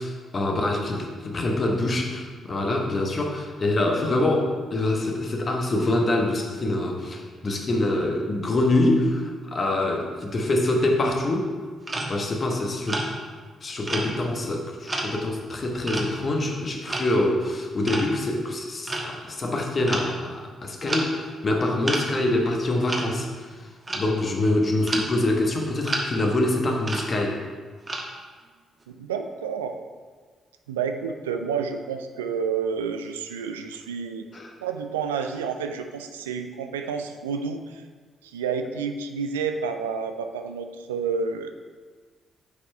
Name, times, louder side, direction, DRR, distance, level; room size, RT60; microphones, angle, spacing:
voice 1, 0.0-11.5 12.1-13.0 13.6-21.1 21.4-23.5 23.9-27.4 34.3-34.5, left 1 dB, 40° left, 1 dB, 1.2 m, -25 dB
sound 1, 11.9-12.2 12.8-13.2 13.8-14.5 14.9-15.3 15.9-16.2 16.8-17.1 17.9-18.1 18.9-19.2 19.9-20.1 20.4-20.5 20.8-21.1 21.8-22.1 22.9-23.0 23.6-24.1 24.9-25.1 25.8-26.1 26.8-27.1 27.9-28.0, right 2 dB, 30° right, 1.2 m, -30 dB
voice 2, 28.9-29.7 30.7-34.3 34.6-37.8 38.2-41.6, right 6 dB, 85° right, 6 dB, 0.3 m, -30 dB
7.2 x 4.7 x 4.4 m, 1.5 s
hypercardioid pair, 40°, 0 cm